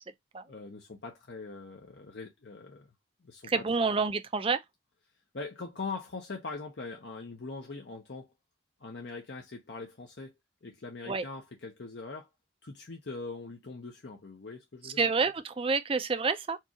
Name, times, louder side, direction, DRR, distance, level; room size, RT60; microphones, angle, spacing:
voice 1, 0.5-2.9 3.2-3.7 5.3-8.3 8.8-10.3 10.6-12.3 12.6-15.0, left 3 dB, 60° left, 0.7 m, -42 dB
voice 2, 3.5-4.6 11.1-11.2 14.8-16.6, right 4 dB, 30° right, 0.4 m, -28 dB
4.5 x 2.4 x 2.8 m
head